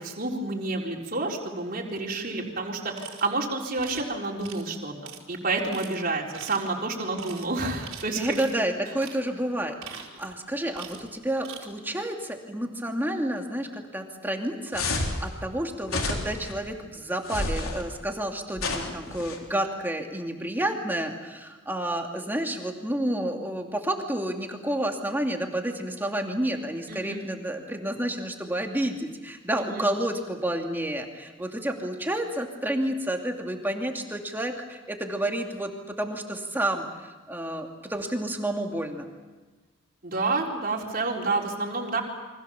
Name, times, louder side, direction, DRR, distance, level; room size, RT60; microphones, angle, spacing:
voice 1, 0.0-4.9 5.3-8.4 26.9-27.2 29.6-29.9 40.0-42.0, right 3 dB, 45° right, -1 dB, 4.1 m, -29 dB
sound 1, 2.9-3.3 3.8-4.1 4.4-4.6 5.0-5.2 5.6-5.9 6.3-6.7 7.1-7.5 7.8-8.6 9.0-9.2 9.6-10.4 10.7-11.1 11.4-11.7, right 7 dB, 90° right, 4.3 m, -42 dB
voice 2, 8.2-39.1, right 1 dB, 10° right, 2 dB, 2.5 m, -30 dB
sound 2, 14.7-15.2 15.9-16.5 17.3-17.8 18.6-19.4, left 2 dB, 90° left, 3.8 m, -29 dB
29.5 x 24.5 x 7.1 m, 1.3 s
head